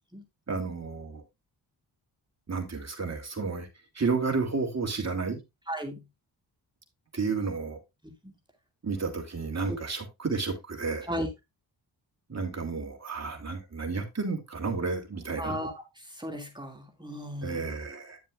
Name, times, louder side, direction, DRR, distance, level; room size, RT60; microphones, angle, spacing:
voice 1, 0.5-1.2 2.5-3.7 3.9-5.4 7.1-7.8 8.8-11.1 12.3-15.6 17.4-18.2, right 4 dB, 35° right, 3.0 m, -31 dB
voice 2, 5.7-6.0 9.7-9.8 11.1-11.3 15.4-15.8 16.1-17.6, equal, 10° right, 2.4 m, -35 dB
10.5 x 7.3 x 2.5 m
cardioid pair, 65°, 43 cm